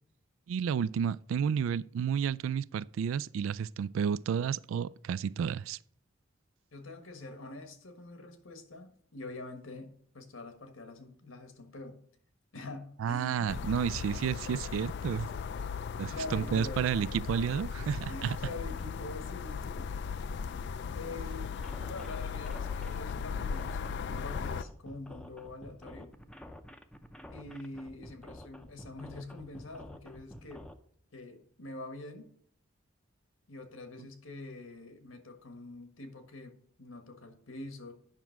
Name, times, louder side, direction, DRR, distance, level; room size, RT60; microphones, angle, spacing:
voice 1, 0.5-5.8 13.0-15.3 16.0-18.4 34.0-34.1, right 7 dB, 75° right, 0.3 m, -31 dB
voice 2, 6.7-12.0 12.5-13.5 16.1-16.9 18.1-20.0 20.4-21.5 21.8-26.1 27.3-30.6 31.1-32.3 33.5-37.9, left 2 dB, 85° left, 1.5 m, -45 dB
sound 1, 13.5-24.6, left 6 dB, 55° left, 0.3 m, -37 dB
sound 2, 21.5-30.7, equal, 5° left, 0.6 m, -49 dB
9.1 x 6.0 x 4.5 m
head